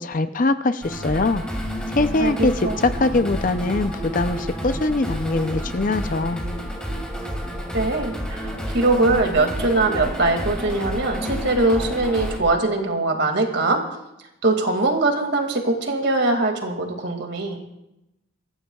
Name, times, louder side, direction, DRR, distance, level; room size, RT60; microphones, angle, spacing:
voice 1, 0.0-1.4 1.9-6.4, left 2 dB, 40° left, 11 dB, 0.5 m, -22 dB
sound 1, 0.8-12.4, equal, 5° left, 2.6 m, -30 dB
voice 2, 2.2-2.8 7.7-13.8 14.4-17.6, right 2 dB, 55° right, 3 dB, 2.2 m, -22 dB
24.5 x 14.0 x 2.4 m, 0.88 s
head